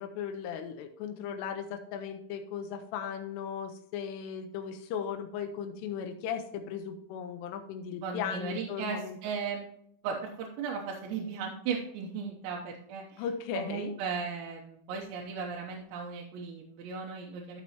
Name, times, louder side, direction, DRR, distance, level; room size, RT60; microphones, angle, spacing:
voice 1, 0.0-9.2 13.2-13.9, left 7 dB, 90° left, 5 dB, 2.5 m, -37 dB
voice 2, 8.0-9.7 10.0-13.2 13.5-17.6, right 5 dB, 80° right, -2 dB, 3.1 m, -36 dB
13.5 x 6.1 x 2.9 m, 0.71 s
omnidirectional pair, 5.5 m